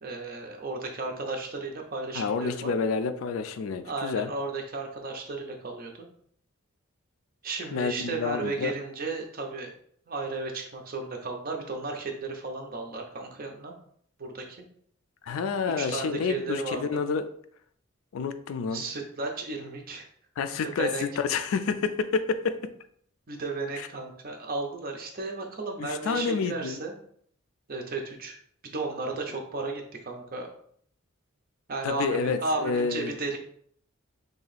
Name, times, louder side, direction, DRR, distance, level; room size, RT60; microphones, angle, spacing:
voice 1, 0.0-2.7 3.8-6.1 7.4-9.7 10.1-13.7 14.2-14.7 15.6-17.0 18.7-20.1 20.6-21.0 23.3-26.9 27.7-28.4 28.6-30.5 31.7-33.4, right 3 dB, 45° right, 2 dB, 0.6 m, -34 dB
voice 2, 2.1-4.3 7.7-8.7 15.2-17.3 18.1-18.8 20.4-22.6 25.8-26.8 31.8-33.2, left 5 dB, 75° left, 10 dB, 0.3 m, -29 dB
3.0 x 2.7 x 4.0 m, 0.63 s
head